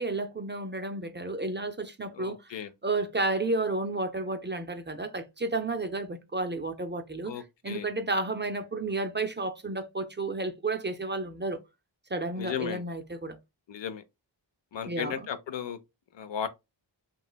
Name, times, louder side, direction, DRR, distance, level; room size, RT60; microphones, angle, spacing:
voice 1, 0.0-2.5 2.8-11.6 12.1-13.4 14.9-15.2, right 2 dB, 25° right, 0.4 m, -32 dB
voice 2, 2.1-2.7 7.3-7.9 12.4-12.8 13.7-14.0 14.7-15.8 16.1-16.5, left 8 dB, 75° left, 0.6 m, -35 dB
3.2 x 2.8 x 2.2 m
wide cardioid pair, 70°, 45 cm